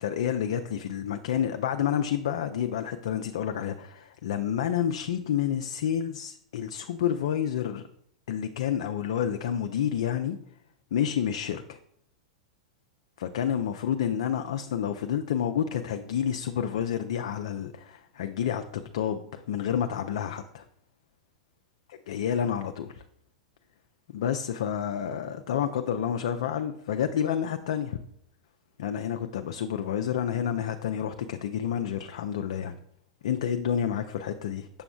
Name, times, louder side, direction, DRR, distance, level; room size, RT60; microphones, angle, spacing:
voice 1, 0.0-7.8 8.3-10.4 10.9-11.8 13.2-20.7 22.1-23.0 24.1-28.0 28.8-32.7 33.2-34.8, left 9 dB, 60° left, 7 dB, 0.4 m, -29 dB
6.8 x 5.9 x 2.3 m, 0.69 s
figure-of-eight pair, 90°, 3 cm